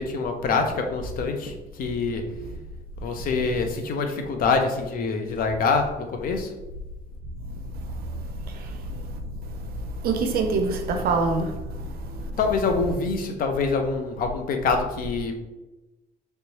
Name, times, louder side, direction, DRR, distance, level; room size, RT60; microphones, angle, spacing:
voice 1, 0.0-2.2 3.0-6.5 12.4-15.4, left 4 dB, 55° left, 0.6 m, -25 dB
voice 2, 7.4-12.3, right 3 dB, 65° right, 0.5 m, -28 dB
3.2 x 3.0 x 2.9 m
cardioid pair, 110°, 17 cm